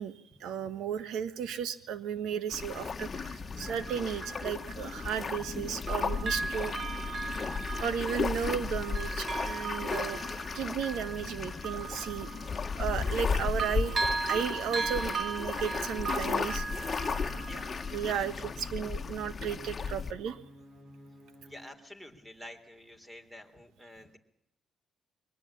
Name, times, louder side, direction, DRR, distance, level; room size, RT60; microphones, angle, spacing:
voice 1, 0.0-7.4 7.8-10.2 10.5-12.3 12.8-13.9 14.2-16.7 17.9-20.4, right 8 dB, 85° right, 14 dB, 1.4 m, -34 dB
sound 1, 2.5-20.1, left 5 dB, 35° left, 1.6 m, -35 dB
Bell, 2.6-2.7 3.6-5.6 5.9-13.3 13.6-18.2 18.6-18.7, right 4 dB, 45° right, 1.2 m, -38 dB
sound 2, 16.3-21.8, left 1 dB, 25° right, 3.1 m, -53 dB
voice 2, 17.3-17.8 18.1-18.3 21.5-24.2, left 1 dB, 10° right, 8 dB, 3.6 m, -49 dB
22.5 x 19.0 x 8.7 m, 0.81 s
cardioid pair, 90°, 0 cm